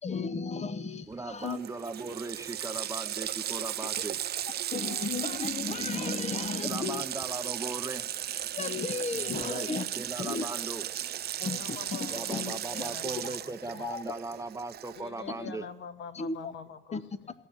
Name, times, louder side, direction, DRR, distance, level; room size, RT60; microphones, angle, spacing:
voice 1, 0.0-1.6 4.7-7.1 8.6-9.9 10.2-10.5 11.4-12.6 13.7-14.1 15.4-15.5 16.1-16.5 16.9-17.0, left 4 dB, 35° left, 13 dB, 0.9 m, -34 dB
voice 2, 1.1-4.2 6.6-8.1 9.3-9.7 10.0-10.9 12.1-15.6, right 2 dB, 15° right, 10 dB, 0.7 m, -38 dB
Water tap faucet, 1.1-1.2 1.4-15.2, right 11 dB, 55° right, 0.5 m, -36 dB
voice 3, 11.6-13.9 14.9-17.3, left 7 dB, 70° left, 11 dB, 1.2 m, -45 dB
15.5 x 6.5 x 10.0 m, 0.89 s
cardioid pair, 90°, 20 cm